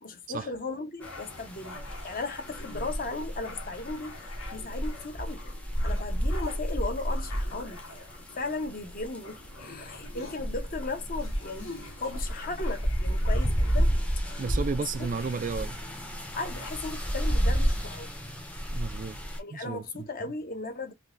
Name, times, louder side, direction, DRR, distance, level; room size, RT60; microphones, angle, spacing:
voice 1, 0.0-4.2 4.5-5.4 5.8-8.1 8.3-14.4 16.3-18.1 19.4-20.9, left 3 dB, 40° left, 1.0 m, -36 dB
sound 1, 1.0-16.7, left 3 dB, 65° left, 1.7 m, -47 dB
sound 2, 1.0-19.4, equal, 5° left, 0.7 m, -31 dB
voice 2, 14.4-15.8 18.7-19.2 19.5-20.1, right 5 dB, 40° right, 0.4 m, -33 dB
3.7 x 2.9 x 2.6 m
head